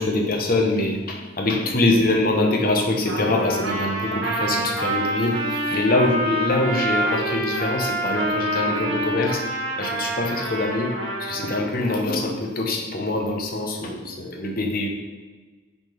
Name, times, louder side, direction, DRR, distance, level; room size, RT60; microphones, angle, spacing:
voice 1, 0.0-9.4 9.8-10.9 11.2-14.9, left 2 dB, 45° left, 1 dB, 0.9 m, -24 dB
Trumpet, 3.1-11.6, right 1 dB, 70° right, 1.3 m, -27 dB
5.1 x 4.1 x 4.5 m, 1.4 s
head